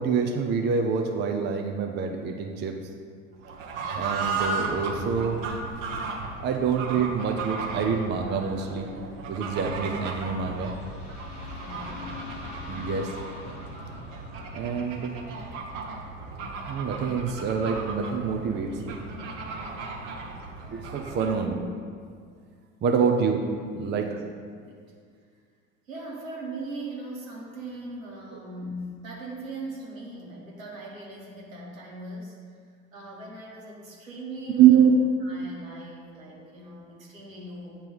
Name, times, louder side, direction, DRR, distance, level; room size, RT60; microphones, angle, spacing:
voice 1, 0.0-2.8 4.0-5.4 6.4-8.9 9.3-10.7 12.7-13.1 14.5-15.1 16.7-19.0 20.7-21.7 22.8-23.4 23.7-24.2 28.3-28.4 34.6-34.9, right 7 dB, 25° right, 3 dB, 0.6 m, -25 dB
Fowl / Bird, 3.4-21.5, right 3 dB, 60° right, 1.1 m, -35 dB
sound 1, 10.1-15.8, left 3 dB, 45° left, 1.2 m, -42 dB
voice 2, 11.6-12.2 21.1-21.6 23.0-23.1 23.8-24.2 24.5-24.8 25.9-32.4 32.9-34.8 35.2-37.8, right 2 dB, 75° right, -4 dB, 1.7 m, -40 dB
8.6 x 3.0 x 5.4 m, 2.1 s
figure-of-eight pair, 75°, 40 cm